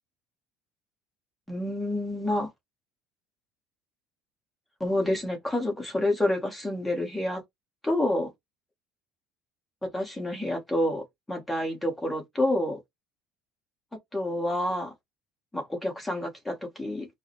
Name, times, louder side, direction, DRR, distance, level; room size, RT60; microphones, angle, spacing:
voice 1, 1.5-2.5 4.8-7.4 7.8-8.3 9.8-12.8 14.1-14.9 15.5-17.1, left 1 dB, 5° left, 1.1 m, -28 dB
4.6 x 2.1 x 3.0 m
cardioid pair, 170°, 0 cm